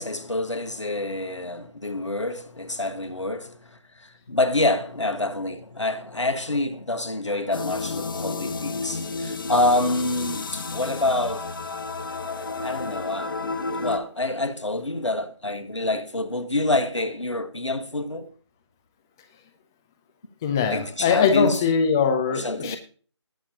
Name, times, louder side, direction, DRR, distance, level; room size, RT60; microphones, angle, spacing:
voice 1, 0.0-11.5 12.6-13.3 13.8-18.3 20.7-21.6 22.3-22.8, left 2 dB, 85° left, 1.6 m, -27 dB
sound 1, 7.5-14.0, left 3 dB, 45° left, 1.4 m, -31 dB
voice 2, 20.4-22.8, left 6 dB, 5° left, 0.4 m, -22 dB
19.0 x 7.2 x 2.9 m
figure-of-eight pair, 155°, 15 cm